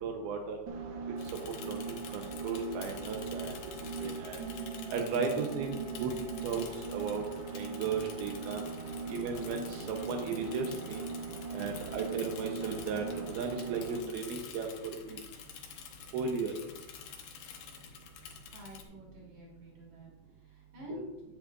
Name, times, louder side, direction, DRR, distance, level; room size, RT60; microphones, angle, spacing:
voice 1, 0.0-0.6 1.6-3.6 4.0-4.4 4.9-6.1 6.4-6.6 6.9-7.2 7.5-8.6 9.1-11.0 11.5-14.7 15.0-15.2 16.1-16.5 20.9-21.1, right 5 dB, 90° right, 2 dB, 2.8 m, -35 dB
sound 1, 0.7-14.2, right 4 dB, 70° right, 2.3 m, -40 dB
Bicycle / Mechanisms, 1.2-18.8, left 7 dB, 75° left, 2.7 m, -49 dB
voice 2, 18.5-20.1 20.4-21.1, left 1 dB, 50° right, -3 dB, 4.3 m, -48 dB
11.0 x 8.9 x 2.5 m, 1.0 s
omnidirectional pair, 4.3 m